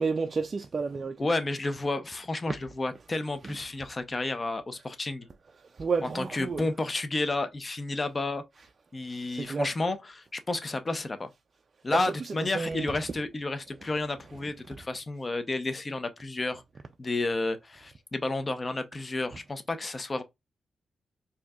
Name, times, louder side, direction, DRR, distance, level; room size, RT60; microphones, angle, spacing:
voice 1, 0.0-1.3 2.5-2.6 3.4-3.5 5.7-6.7 9.3-9.7 11.9-12.9, right 4 dB, 40° right, 0.3 m, -31 dB
voice 2, 1.2-5.3 6.1-8.4 8.9-11.3 11.8-16.6 17.0-20.2, left 2 dB, 25° left, 0.6 m, -31 dB
4.3 x 2.7 x 2.3 m
cardioid pair, 110°, 0 cm